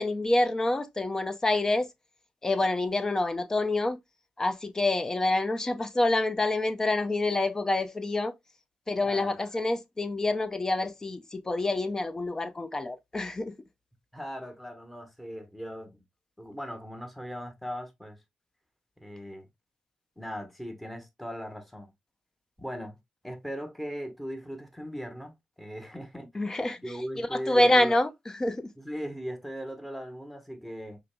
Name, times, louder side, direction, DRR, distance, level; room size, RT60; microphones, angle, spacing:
voice 1, 0.0-1.9 2.4-4.0 4.4-8.3 8.9-13.5 26.3-26.8 27.2-28.7, left 2 dB, 25° left, 0.6 m, -27 dB
voice 2, 9.0-9.4 14.1-16.0 16.4-18.2 19.0-19.5 20.2-21.9 22.6-23.0 23.2-26.3 26.8-28.0 28.8-31.0, equal, 5° left, 1.1 m, -39 dB
4.9 x 2.9 x 2.2 m
cardioid pair, 90°, 2 cm